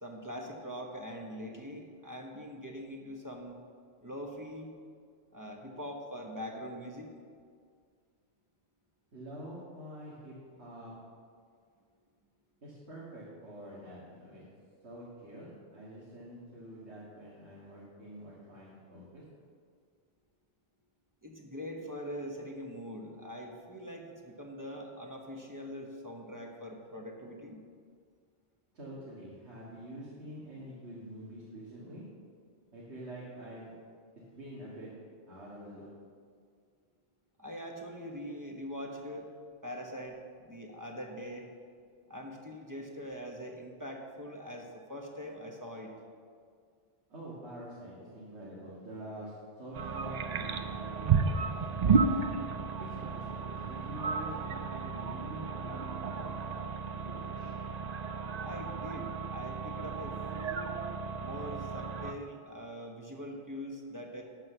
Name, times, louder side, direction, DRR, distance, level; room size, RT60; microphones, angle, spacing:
voice 1, 0.0-3.6 4.0-4.7 5.3-7.1 21.2-27.6 37.4-39.3 39.6-41.5 42.1-45.9 58.4-60.7 61.2-64.2, equal, 20° right, 1 dB, 1.0 m, -43 dB
voice 2, 9.1-10.9 12.6-14.4 14.8-19.2 28.7-32.0 32.7-33.7 34.3-34.9 35.2-35.9 47.1-52.1 52.8-57.6, right 1 dB, 85° right, -7 dB, 2.1 m, -46 dB
sound 1, 49.7-62.1, right 5 dB, 50° right, 0.5 m, -33 dB
12.0 x 4.7 x 6.7 m, 2.1 s
omnidirectional pair, 1.1 m